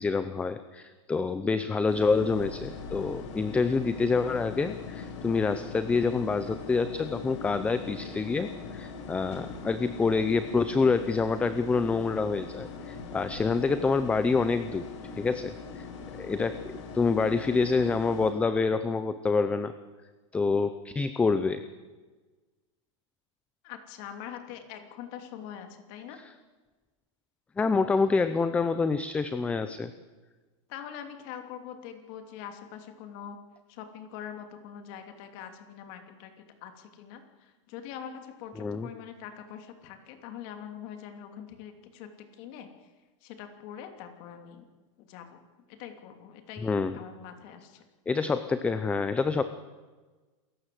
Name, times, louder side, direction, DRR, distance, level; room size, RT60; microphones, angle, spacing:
voice 1, 0.0-14.8 15.2-15.9 16.2-19.7 20.3-21.6 27.6-29.9 38.6-38.9 46.6-47.0 48.1-49.4, left 4 dB, 10° left, 12 dB, 0.6 m, -27 dB
sound 1, 1.9-18.3, left 4 dB, 65° left, 4.8 m, -41 dB
voice 2, 23.6-26.2 30.7-33.4 33.7-42.7 43.2-44.7 45.0-45.4 45.7-47.8, left 9 dB, 40° left, 7 dB, 2.9 m, -43 dB
27.0 x 14.5 x 7.8 m, 1.3 s
supercardioid pair, 160°, 16 cm